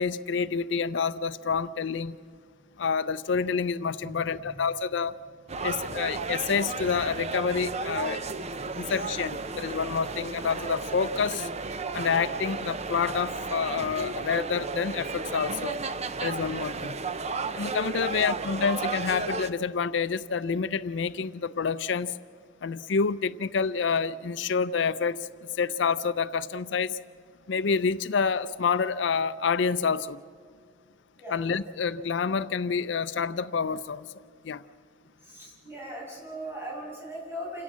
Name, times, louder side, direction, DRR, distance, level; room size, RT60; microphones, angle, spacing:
voice 1, 0.0-2.2 2.8-5.1 5.6-8.2 8.7-11.5 11.9-15.8 16.2-16.9 17.6-22.1 22.6-25.3 25.6-27.0 27.5-30.2 31.3-34.1 34.5-34.6, left 5 dB, 70° left, 0.5 m, -28 dB
voice 2, 4.0-4.4 8.8-8.9 17.9-18.2 31.2-31.4 35.2-37.6, right 1 dB, 15° right, 7.3 m, -39 dB
sound 1, 5.5-19.5, right 4 dB, 35° right, 0.7 m, -33 dB
28.5 x 17.0 x 7.4 m
head